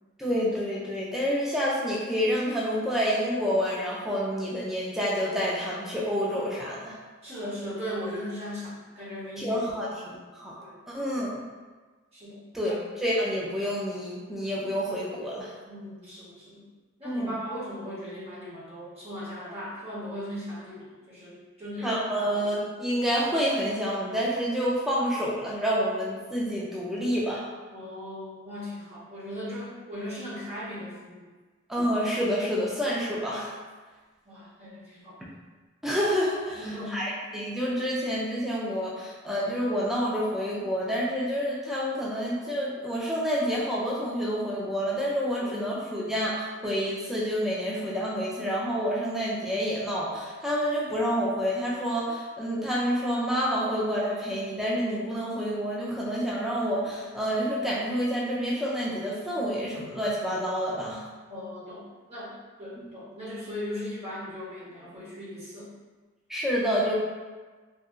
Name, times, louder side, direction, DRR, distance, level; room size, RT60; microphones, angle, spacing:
voice 1, 0.2-6.9 9.4-10.5 10.9-11.4 12.5-15.5 17.0-17.3 21.8-27.5 31.7-33.5 35.8-36.6 36.9-61.0 66.3-66.9, equal, ahead, -6 dB, 0.3 m, -28 dB
voice 2, 7.2-9.6 10.6-10.8 12.1-12.8 15.7-16.7 17.0-22.1 22.3-22.5 27.7-31.3 34.2-35.2 36.5-37.0 45.4-45.6 61.3-62.3 62.6-65.7, equal, 30° right, -9 dB, 1.0 m, -38 dB
2.7 x 2.5 x 2.4 m, 1.3 s
head